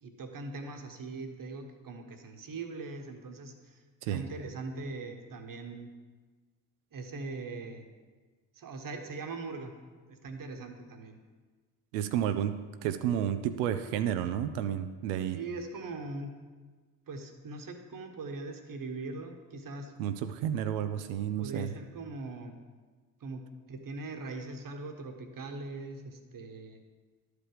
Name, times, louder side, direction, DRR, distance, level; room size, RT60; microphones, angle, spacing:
voice 1, 0.0-3.8 4.1-5.9 6.9-7.8 8.5-9.7 10.1-11.2 15.3-16.4 17.1-19.9 21.4-22.5 23.2-23.4 23.7-26.8, right 3 dB, 45° right, 5 dB, 1.3 m, -41 dB
voice 2, 11.9-15.4 20.0-21.7, right 10 dB, 80° right, 9 dB, 0.5 m, -31 dB
11.0 x 4.9 x 5.0 m, 1.4 s
hypercardioid pair, 45°, 47 cm